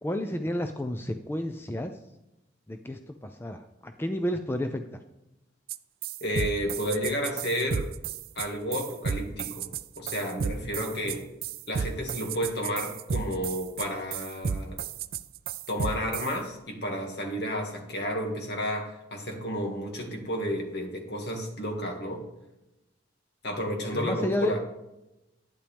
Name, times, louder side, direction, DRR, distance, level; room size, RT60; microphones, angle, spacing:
voice 1, 0.0-1.9 2.7-4.8 23.9-24.6, left 1 dB, 10° left, 6 dB, 0.4 m, -31 dB
sound 1, 5.7-5.8 6.0-16.3, right 6 dB, 50° right, 0.4 m, -32 dB
voice 2, 6.2-7.9 8.4-9.7 10.0-11.3 11.7-14.8 15.7-22.2 23.4-24.6, equal, 60° left, 1 dB, 2.1 m, -31 dB
11.5 x 10.0 x 3.5 m, 0.93 s
head